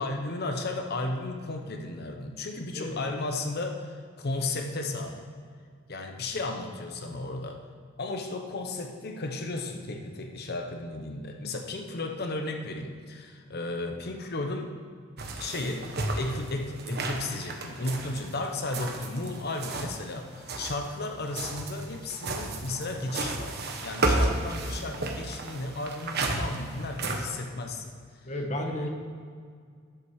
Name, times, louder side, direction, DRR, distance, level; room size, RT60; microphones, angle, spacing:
voice 1, 0.0-5.2 5.9-7.6 8.0-14.7 15.4-15.9 16.2-27.9 28.6-28.9, left 2 dB, 55° left, 4 dB, 0.9 m, -34 dB
voice 2, 2.7-3.1 28.2-28.9, left 1 dB, 35° left, 2 dB, 1.3 m, -32 dB
sound 1, 15.2-20.0 20.3-27.3, right 2 dB, 55° right, 1.2 m, -32 dB
12.0 x 5.9 x 6.4 m, 2.1 s
head